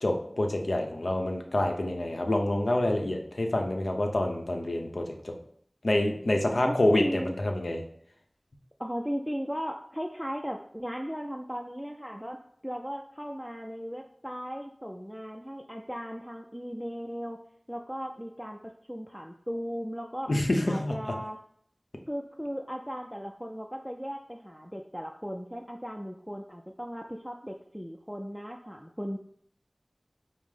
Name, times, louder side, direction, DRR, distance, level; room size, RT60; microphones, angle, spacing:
voice 1, 0.0-5.4 5.8-7.8 20.3-20.9, left 1 dB, 85° left, 3 dB, 0.6 m, -27 dB
voice 2, 6.5-7.3 8.8-12.4 12.6-17.4 17.7-20.3 20.7-21.4 22.1-29.2, equal, ahead, 2 dB, 0.4 m, -37 dB
5.4 x 2.0 x 4.9 m, 0.64 s
wide cardioid pair, 45°, 0 cm